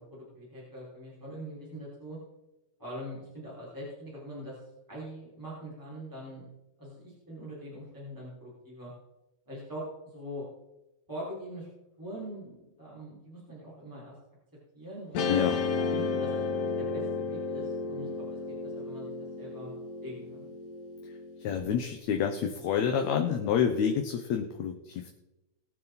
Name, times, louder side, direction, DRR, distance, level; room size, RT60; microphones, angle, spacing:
voice 1, 0.1-2.2 2.8-4.6 4.9-6.4 6.8-8.9 9.5-10.4 11.1-11.7 12.0-14.1 14.7-15.3 15.9-16.4 16.8-19.7 20.0-20.5, equal, 5° right, -8 dB, 4.7 m, -43 dB
Guitar, 15.2-21.6, left 4 dB, 90° left, 2.8 m, -33 dB
voice 2, 15.3-15.6 21.4-25.1, left 8 dB, 70° left, 4 dB, 2.2 m, -28 dB
22.0 x 7.5 x 4.0 m, 0.98 s
omnidirectional pair, 3.5 m